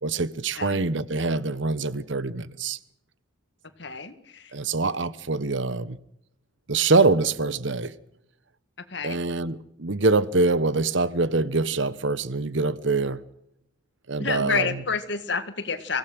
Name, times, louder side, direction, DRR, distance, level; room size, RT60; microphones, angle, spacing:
voice 1, 0.0-2.8 4.5-6.0 6.7-7.9 9.0-13.2 14.1-14.8, right 3 dB, 65° right, 1.1 m, -24 dB
voice 2, 3.8-4.5 8.9-9.2 14.2-16.0, left 5 dB, 60° left, 1.9 m, -29 dB
24.5 x 17.0 x 6.3 m
head